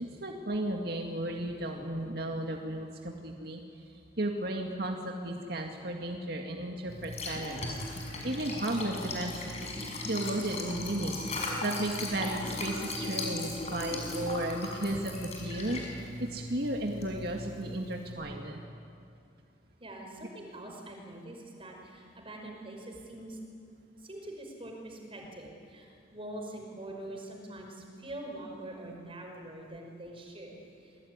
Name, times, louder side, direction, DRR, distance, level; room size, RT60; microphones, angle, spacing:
voice 1, 0.0-3.6 4.2-7.8 8.2-9.7 10.0-18.6 28.8-28.9, right 1 dB, 60° right, 1 dB, 2.2 m, -34 dB
Liquid, 6.9-18.1, left 2 dB, 35° left, 6.1 m, -38 dB
voice 2, 19.8-23.4 24.0-31.0, right 1 dB, 30° right, 1 dB, 5.4 m, -44 dB
27.5 x 21.0 x 9.8 m, 2.4 s
head